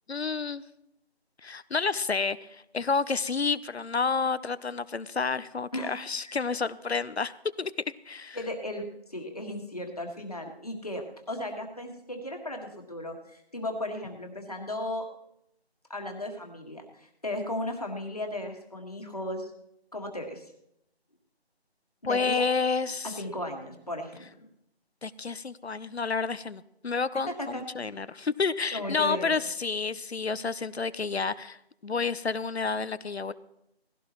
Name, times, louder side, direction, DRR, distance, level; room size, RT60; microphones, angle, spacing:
voice 1, 0.1-0.6 1.4-7.7 8.1-8.4 22.0-23.2 25.0-33.3, left 4 dB, 75° left, 16 dB, 0.7 m, -30 dB
voice 2, 8.3-8.8 9.1-15.1 15.9-19.5 19.9-20.4 22.0-22.4 23.0-24.5 27.3-27.6 28.7-29.4, left 1 dB, 35° left, 2 dB, 1.8 m, -35 dB
19.0 x 16.0 x 3.0 m, 0.80 s
figure-of-eight pair, 180°, 32 cm